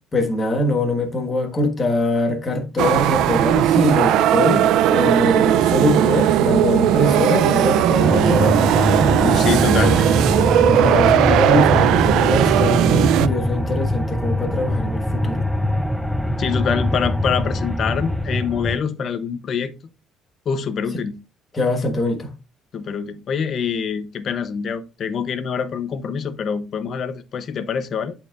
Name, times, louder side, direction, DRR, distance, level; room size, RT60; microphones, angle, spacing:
voice 1, 0.1-8.6 10.7-15.5 21.5-22.3, left 1 dB, 20° left, 1.4 m, -22 dB
sound 1, 2.8-13.3, right 11 dB, 70° right, 0.4 m, -17 dB
sound 2, 8.0-18.8, left 1 dB, ahead, 0.4 m, -22 dB
voice 2, 9.2-10.1 11.3-11.6 16.4-19.7 20.5-21.2 22.7-28.1, left 6 dB, 40° left, 0.7 m, -25 dB
11.0 x 4.5 x 2.4 m
cardioid pair, 175°, 0 cm